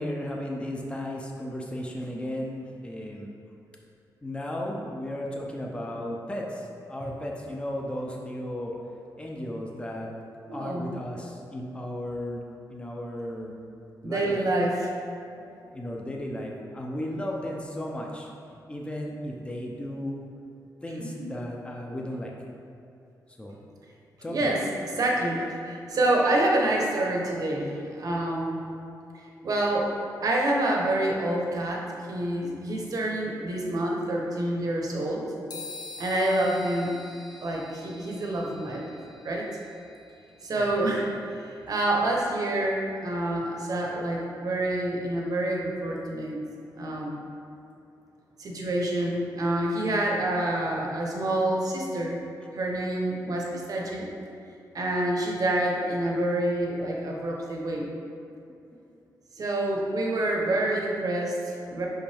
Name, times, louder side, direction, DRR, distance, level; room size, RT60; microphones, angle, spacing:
voice 1, 0.0-3.3 4.2-8.7 9.2-10.1 10.5-13.5 14.0-14.4 15.7-18.3 18.7-20.2 20.8-22.3 23.4-23.6 24.2-24.5 40.6-40.9 58.7-58.8 60.2-60.4, left 1 dB, 15° left, -1 dB, 0.7 m, -35 dB
voice 2, 10.5-11.0 14.0-14.9 21.0-21.3 24.3-24.6 24.9-28.7 29.4-35.2 36.0-36.9 37.4-38.9 39.2-39.5 40.4-41.1 41.7-46.4 46.7-47.2 48.4-52.2 52.5-54.1 54.7-57.9 59.3-61.9, right 1 dB, 55° right, -1 dB, 1.0 m, -27 dB
sound 1, 35.5-43.2, left 3 dB, 65° left, 0.9 m, -47 dB
5.7 x 5.2 x 3.5 m, 2.6 s
wide cardioid pair, 130°, 7 cm